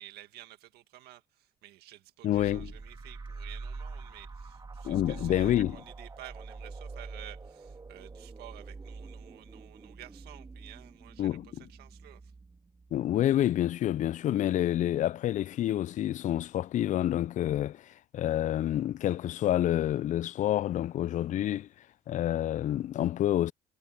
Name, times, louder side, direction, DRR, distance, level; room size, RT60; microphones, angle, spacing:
voice 1, 0.0-12.3, right 15 dB, 80° right, 1.9 m, -51 dB
voice 2, 2.2-2.7 4.8-5.8 11.2-11.5 12.9-17.8 18.1-21.7 22.1-23.5, left 12 dB, 50° left, 0.4 m, -28 dB
sound 1, 2.3-13.7, right 3 dB, 25° right, 2.6 m, -45 dB
supercardioid pair, 80°, 16 cm